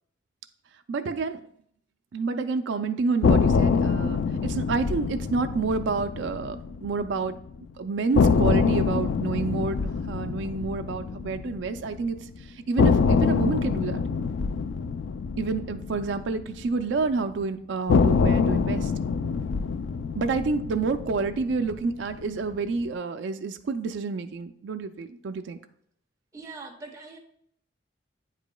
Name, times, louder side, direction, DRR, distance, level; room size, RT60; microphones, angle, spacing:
voice 1, 0.9-1.4 2.1-7.4 7.8-14.0 15.4-18.9 20.2-25.6, right 4 dB, 70° right, 8 dB, 0.4 m, -29 dB
sound 1, 3.2-7.3 7.6-7.7 8.1-12.2 12.8-17.1 17.9-22.3, left 5 dB, 70° left, 0.3 m, -25 dB
voice 2, 26.3-27.2, right 3 dB, 15° right, 0 dB, 0.8 m, -42 dB
9.0 x 4.9 x 2.2 m, 0.68 s
head